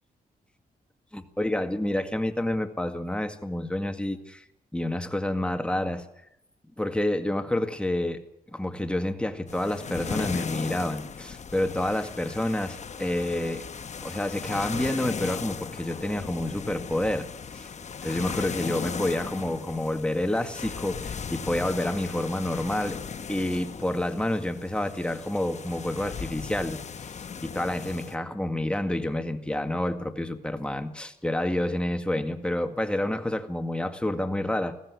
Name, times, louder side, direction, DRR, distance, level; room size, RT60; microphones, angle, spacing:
voice 1, 1.1-4.4 4.7-6.1 6.8-8.2 8.5-13.6 14.0-17.7 18.0-23.0 23.3-27.1 27.4-34.7, left 1 dB, 5° left, 7 dB, 2.0 m, -29 dB
sound 1, 9.5-28.2, left 6 dB, 50° left, 1.1 m, -37 dB
20.5 x 15.5 x 8.4 m, 0.82 s
cardioid pair, 90°, 16 cm